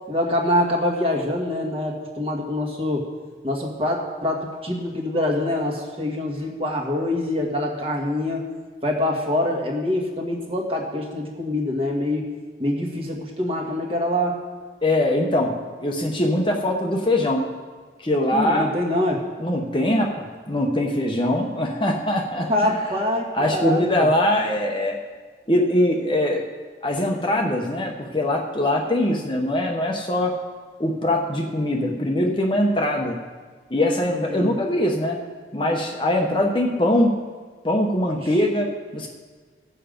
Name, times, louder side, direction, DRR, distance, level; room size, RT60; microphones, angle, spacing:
voice 1, 0.1-3.0 3.4-8.4 8.8-12.3 12.6-14.4 18.3-19.2 22.5-23.9 34.3-34.5, left 1 dB, 30° right, 0 dB, 1.6 m, -25 dB
voice 2, 14.8-17.5 18.0-18.7 19.4-22.7 23.3-25.0 25.5-26.4 26.8-30.3 30.8-33.2 33.7-35.2 35.5-37.1 37.6-39.1, left 1 dB, 25° left, 1 dB, 0.9 m, -22 dB
16.0 x 7.0 x 5.2 m, 1.5 s
head